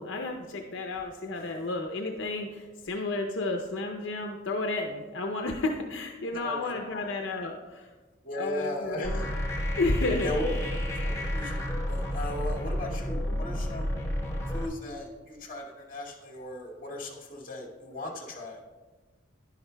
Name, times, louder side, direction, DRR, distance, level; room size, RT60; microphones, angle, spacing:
voice 1, 0.0-7.9 8.4-9.2 9.8-10.3 13.3-13.5, left 2 dB, 75° left, 3 dB, 0.6 m, -32 dB
voice 2, 6.3-7.1 8.2-9.3 10.2-10.5 10.9-14.0 14.5-18.6, left 1 dB, 45° left, -2 dB, 1.9 m, -37 dB
sound 1, 9.0-14.7, left 1 dB, 15° left, 1.0 m, -31 dB
11.0 x 10.5 x 2.2 m, 1.3 s
head